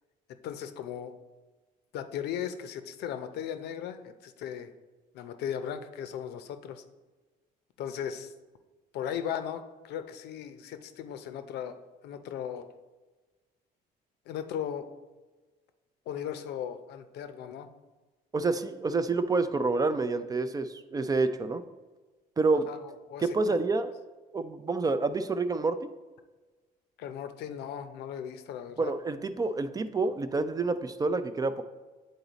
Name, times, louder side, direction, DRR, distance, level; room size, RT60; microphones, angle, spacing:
voice 1, 0.4-1.1 1.9-4.7 5.1-6.8 7.8-8.3 8.9-11.8 12.0-12.7 14.3-14.9 16.1-17.7 22.7-23.6 27.0-28.9, left 9 dB, 75° left, 9 dB, 0.6 m, -37 dB
voice 2, 18.3-21.6 22.4-22.7 23.2-23.9 24.3-25.9 28.8-31.6, right 3 dB, 20° right, 11 dB, 0.4 m, -28 dB
8.3 x 4.0 x 4.0 m, 1.3 s
cardioid pair, 110°, 17 cm